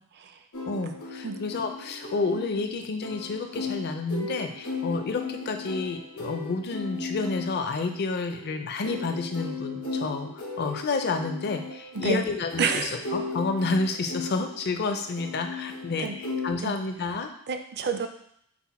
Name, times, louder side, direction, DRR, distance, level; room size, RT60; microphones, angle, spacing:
sound 1, 0.5-16.5, left 3 dB, 85° left, 1.3 m, -37 dB
voice 1, 0.7-17.3, left 3 dB, 50° left, 5 dB, 0.5 m, -30 dB
voice 2, 12.6-12.9 16.0-16.2 16.6-16.7 17.5-18.1, right 5 dB, 50° right, 7 dB, 0.4 m, -28 dB
5.9 x 2.1 x 4.1 m, 0.71 s
head